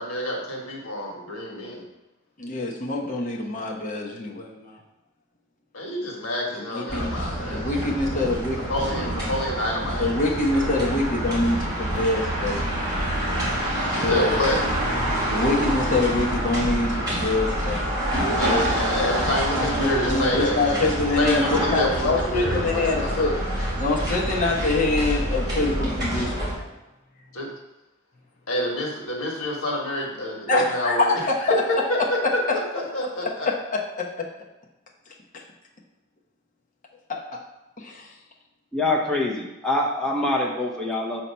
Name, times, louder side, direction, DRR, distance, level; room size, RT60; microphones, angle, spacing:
voice 1, 0.0-1.8 5.7-7.7 8.6-10.1 10.6-10.8 13.9-14.6 18.4-20.9 21.2-23.3 27.3-27.5 28.5-33.5, left 1 dB, 90° left, -1 dB, 1.5 m, -27 dB
voice 2, 2.4-4.8 6.5-8.7 10.0-12.9 14.0-14.4 15.3-18.7 19.6-23.3 23.8-26.7 30.5-31.8 33.5-33.6 35.3-35.4 37.1-37.4 37.8-38.1, left 2 dB, 40° left, -2 dB, 1.0 m, -25 dB
sound 1, 6.9-26.5, right 1 dB, 20° right, 2.4 m, -27 dB
voice 3, 38.7-41.2, left 2 dB, 5° left, -3 dB, 0.9 m, -25 dB
7.2 x 2.9 x 5.5 m, 1.0 s
head